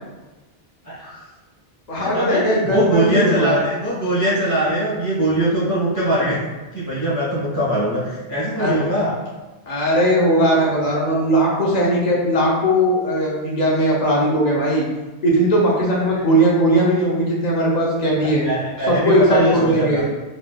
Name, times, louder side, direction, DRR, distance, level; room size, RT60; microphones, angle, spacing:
voice 1, 0.8-1.2 1.9-6.4 6.7-9.1 16.0-16.2 18.2-20.2, right 1 dB, 15° left, -9 dB, 1.2 m, -22 dB
voice 2, 1.9-3.6 8.6-8.8 9.7-14.8 15.2-18.4 18.9-20.1, right 1 dB, 45° left, -4 dB, 0.8 m, -18 dB
3.4 x 2.7 x 2.2 m, 1.2 s
omnidirectional pair, 1.1 m